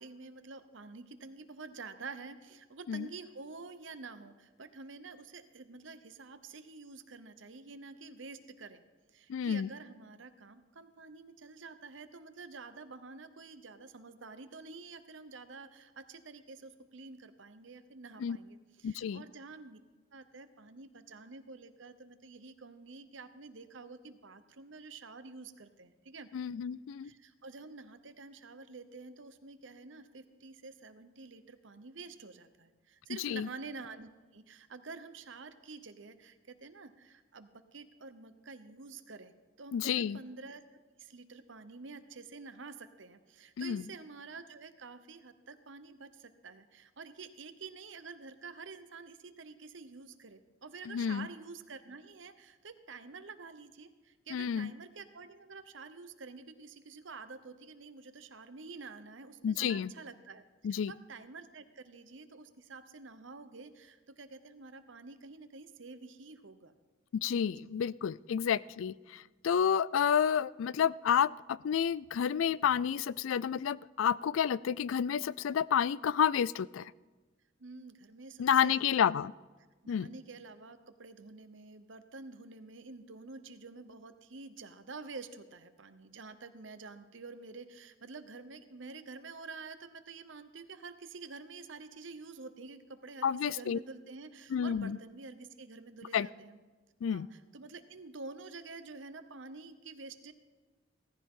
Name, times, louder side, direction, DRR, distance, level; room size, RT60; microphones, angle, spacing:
voice 1, 0.0-8.8 9.1-19.8 20.1-26.3 27.0-40.6 41.0-60.4 60.7-66.7 67.6-67.7 77.6-79.1 79.8-96.6 97.1-100.3, right 4 dB, 70° right, 11 dB, 0.9 m, -49 dB
voice 2, 9.3-9.7 18.2-18.4 18.8-19.2 26.3-27.1 33.2-33.5 39.7-40.2 43.6-43.8 50.9-51.3 54.3-54.7 59.4-59.9 60.6-60.9 67.1-76.9 78.4-79.3 79.9-80.1 93.2-93.8 94.5-95.0 96.1-96.3 97.0-97.3, left 8 dB, 80° left, 20 dB, 0.3 m, -30 dB
17.0 x 14.5 x 3.8 m, 1.3 s
head